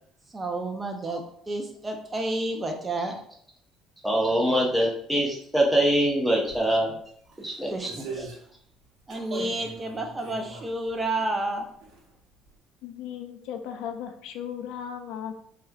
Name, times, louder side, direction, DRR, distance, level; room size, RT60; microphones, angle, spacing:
voice 1, 0.3-3.2 7.7-8.3 9.1-11.7, right 2 dB, 20° right, 3 dB, 0.5 m, -30 dB
voice 2, 4.0-7.0 7.4-7.9, right 1 dB, ahead, -3 dB, 1.0 m, -23 dB
sound 1, 6.5-6.6 7.3-8.4 9.1-11.3 11.7-12.1 12.5-12.6, right 4 dB, 80° right, 1.0 m, -41 dB
voice 3, 12.8-15.4, left 8 dB, 80° left, 7 dB, 0.4 m, -36 dB
4.2 x 2.4 x 2.4 m, 0.63 s
cardioid pair, 110°, 0 cm